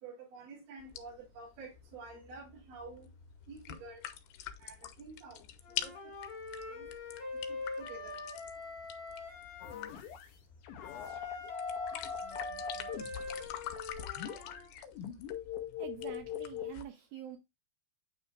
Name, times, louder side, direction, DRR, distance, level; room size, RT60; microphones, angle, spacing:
voice 1, 0.0-3.1 3.5-4.0 4.6-5.4 5.8-5.9 6.7-6.9 7.5-8.2, right 3 dB, 55° right, 3.8 m, -49 dB
sound 1, 0.8-16.8, left 11 dB, 90° left, 2.8 m, -47 dB
Wind instrument woodwind instrument, 5.6-9.8 10.8-14.7, left 3 dB, 50° left, 2.4 m, -44 dB
sound 2, 9.6-10.3 10.6-16.7, left 7 dB, 75° left, 1.9 m, -41 dB
voice 2, 15.8-17.4, right 11 dB, 85° right, 2.1 m, -46 dB
9.1 x 5.5 x 2.2 m
omnidirectional pair, 4.8 m